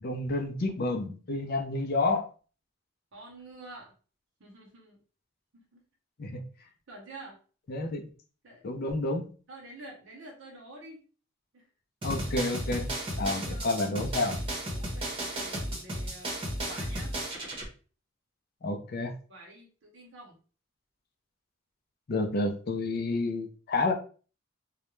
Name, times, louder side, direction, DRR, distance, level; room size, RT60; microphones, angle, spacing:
voice 1, 0.0-2.3 6.2-6.4 7.7-8.1 8.6-9.3 12.0-12.9 13.2-14.4 18.6-19.1 22.1-23.9, left 2 dB, 50° left, 4 dB, 0.4 m, -30 dB
voice 2, 3.1-3.9 4.4-5.0 5.5-5.8 6.9-7.4 8.4-8.6 9.5-11.0 11.5-11.7 13.3-13.9 14.7-16.4 16.6-17.1 19.3-20.4, right 2 dB, 70° right, -1 dB, 0.7 m, -48 dB
sound 1, 12.0-17.7, right 1 dB, 30° right, 0.7 m, -34 dB
2.3 x 2.1 x 3.0 m, 0.38 s
head